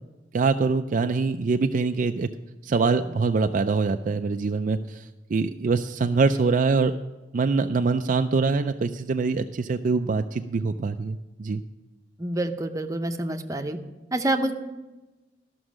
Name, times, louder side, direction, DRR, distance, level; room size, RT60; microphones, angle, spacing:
voice 1, 0.3-2.3 2.6-6.9 7.3-11.6, right 4 dB, 45° right, 7 dB, 0.4 m, -24 dB
voice 2, 12.2-13.8 14.1-14.5, right 1 dB, 20° right, 5 dB, 0.7 m, -27 dB
13.0 x 6.2 x 6.2 m, 1.1 s
head